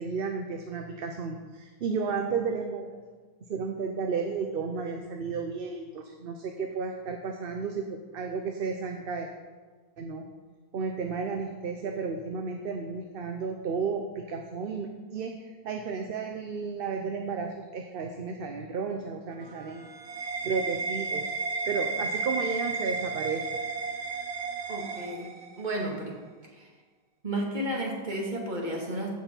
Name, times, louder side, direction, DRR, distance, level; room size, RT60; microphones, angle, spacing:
voice 1, 0.0-3.0 3.5-9.3 10.0-10.3 10.7-19.9 20.4-21.2 21.7-23.6, right 5 dB, 65° right, 4 dB, 0.9 m, -33 dB
sound 1, 19.3-25.8, right 4 dB, 85° right, 1.2 m, -33 dB
voice 2, 24.7-25.3 25.6-26.1 26.5-26.7 27.2-29.1, right 1 dB, 45° right, -1 dB, 2.0 m, -32 dB
15.0 x 6.0 x 4.4 m, 1.4 s
omnidirectional pair, 1.0 m